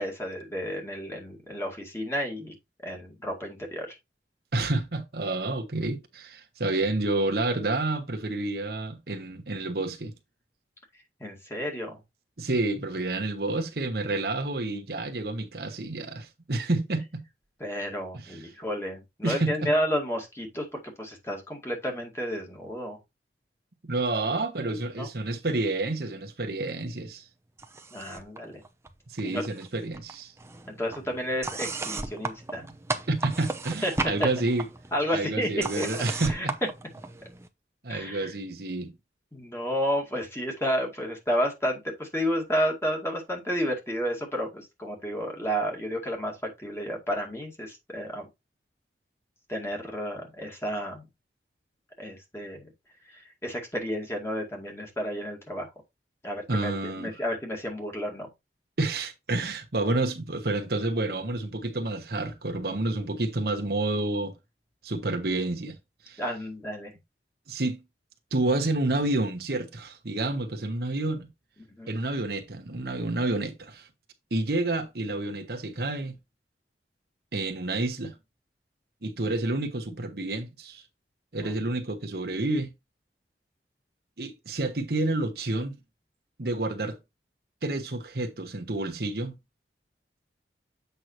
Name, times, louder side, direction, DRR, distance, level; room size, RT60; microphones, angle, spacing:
voice 1, 0.0-2.5 2.8-4.0 11.2-12.0 17.6-23.0 25.0-25.1 27.9-28.6 29.2-29.4 30.7-32.6 33.8-33.9 34.2-34.3 34.9-35.5 35.8-36.5 37.9-38.3 39.3-48.3 49.5-51.0 52.0-52.7 53.1-55.7 56.2-58.3 66.2-66.9 71.7-71.9 81.4-81.5, equal, 15° left, 2.0 m, -31 dB
voice 2, 4.5-10.1 12.4-17.2 18.2-18.4 19.2-19.7 23.8-27.2 29.1-30.3 33.1-34.7 35.1-36.5 37.8-38.9 56.5-57.1 58.8-64.3 64.8-65.8 66.0-66.2 67.5-67.8 68.3-71.3 71.9-73.9 74.3-76.2 77.3-78.1 79.0-80.8 81.3-82.7 84.2-85.8 86.4-87.0 87.6-89.3, right 2 dB, 60° right, 1.1 m, -29 dB
sound 1, 27.6-28.4 28.6-29.7 29.9-37.5, right 3 dB, 15° right, 0.7 m, -35 dB
8.0 x 5.5 x 3.1 m
head